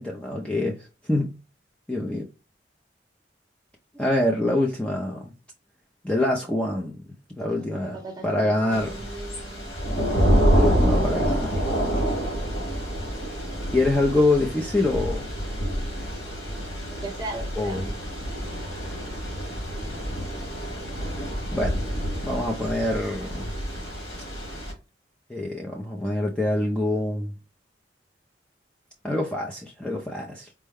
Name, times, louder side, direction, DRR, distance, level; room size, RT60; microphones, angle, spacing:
voice 1, 0.0-1.3 1.9-2.3 3.9-5.3 6.0-7.0 7.4-9.1 10.5-11.7 13.7-15.3 17.6-18.0 21.5-21.8 22.2-23.5 25.3-27.3 29.0-30.5, left 2 dB, 5° left, 0.4 m, -25 dB
voice 2, 7.5-9.7 16.0-16.1 16.9-17.8, right 2 dB, 20° right, 0.9 m, -38 dB
Thunder / Rain, 8.7-24.7, equal, 85° left, 2.1 m, -27 dB
4.5 x 2.1 x 3.4 m
head